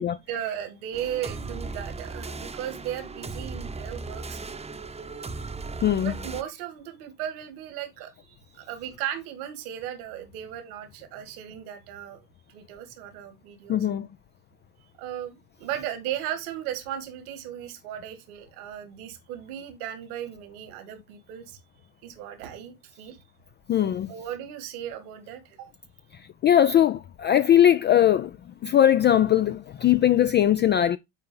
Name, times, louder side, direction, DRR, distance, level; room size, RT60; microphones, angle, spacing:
voice 1, 0.0-4.6 6.0-12.2 12.5-13.8 15.0-21.6 22.0-23.2 24.1-25.7, right 10 dB, 75° right, 2.1 m, -36 dB
sound 1, 0.9-6.4, right 3 dB, 15° right, 0.8 m, -37 dB
voice 2, 5.8-6.1 13.7-14.1 23.7-24.1 26.1-31.0, left 10 dB, 25° left, 0.3 m, -20 dB
9.1 x 4.3 x 3.8 m
hypercardioid pair, 80°, 44 cm